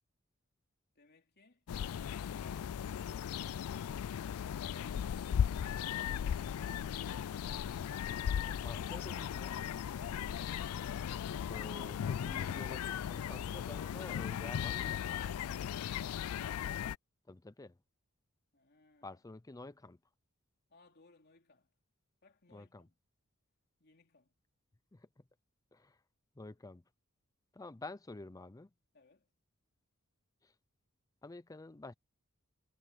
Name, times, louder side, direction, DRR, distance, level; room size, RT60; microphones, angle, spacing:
voice 1, 0.9-3.1 4.3-5.0 18.5-19.1 20.7-21.7 22.2-22.9 23.8-24.3 28.9-29.3, left 3 dB, 50° left, 3.0 m, -64 dB
sound 1, 1.7-17.0, left 8 dB, 85° left, 0.4 m, -37 dB
voice 2, 8.6-9.5 11.5-15.4 17.3-17.8 19.0-20.0 22.5-22.9 24.9-25.2 25.7-26.0 26.4-26.8 27.5-28.7 30.4-30.5 31.2-31.9, left 2 dB, 15° left, 0.5 m, -49 dB
head